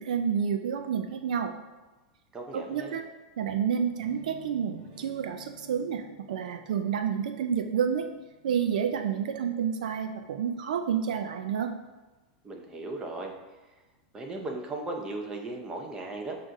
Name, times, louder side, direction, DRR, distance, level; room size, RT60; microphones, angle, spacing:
voice 1, 0.0-1.5 2.5-3.0 3.4-8.1 8.4-11.7, right 7 dB, 80° right, 7 dB, 0.4 m, -29 dB
voice 2, 2.3-3.0 12.4-13.3 14.1-16.4, right 2 dB, 20° right, 2 dB, 0.7 m, -37 dB
sound 1, 4.0-9.9, equal, 60° right, 1.4 m, -53 dB
7.3 x 2.5 x 2.6 m, 1.2 s
supercardioid pair, 125°, 4 cm